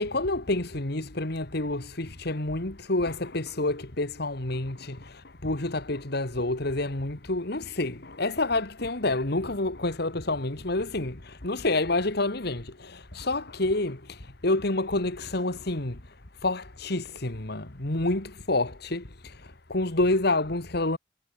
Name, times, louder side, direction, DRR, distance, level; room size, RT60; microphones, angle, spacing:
voice 1, 0.0-16.0 16.4-21.0, left 2 dB, 60° left, 2.2 m, -28 dB
head